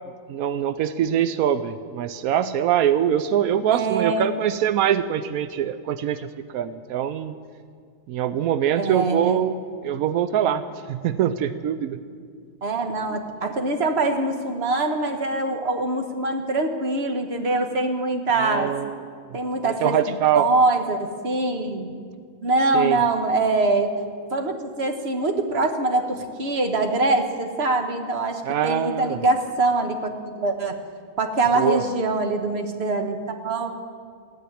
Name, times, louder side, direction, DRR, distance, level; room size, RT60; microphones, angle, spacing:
voice 1, 0.3-7.4 8.1-9.5 9.8-10.6 10.9-12.0 18.4-19.1 19.6-20.5 22.7-23.0 28.5-29.2 31.5-31.8, right 10 dB, 85° right, 12 dB, 0.7 m, -23 dB
voice 2, 3.7-4.3 8.8-9.4 12.6-18.7 19.3-21.9 22.4-23.9 24.3-30.8 31.2-33.7, right 2 dB, 40° right, 6 dB, 1.3 m, -24 dB
14.5 x 9.8 x 9.9 m, 2.1 s
omnidirectional pair, 2.1 m